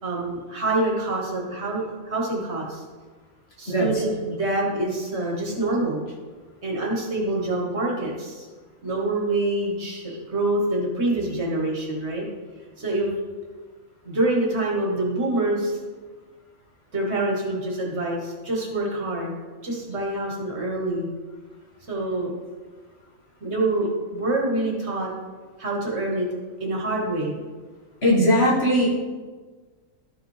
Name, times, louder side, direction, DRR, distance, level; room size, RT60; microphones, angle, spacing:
voice 1, 0.0-2.8 3.6-6.1 6.6-8.5 8.8-12.3 12.8-13.1 14.0-15.8 16.9-19.4 19.6-21.1 21.9-22.3 23.4-25.1 25.6-26.3 26.6-27.4, right 2 dB, 55° right, -2 dB, 1.7 m, -26 dB
voice 2, 28.0-28.9, equal, 50° left, -5 dB, 1.8 m, -19 dB
12.0 x 4.8 x 3.3 m, 1.4 s
omnidirectional pair, 1.4 m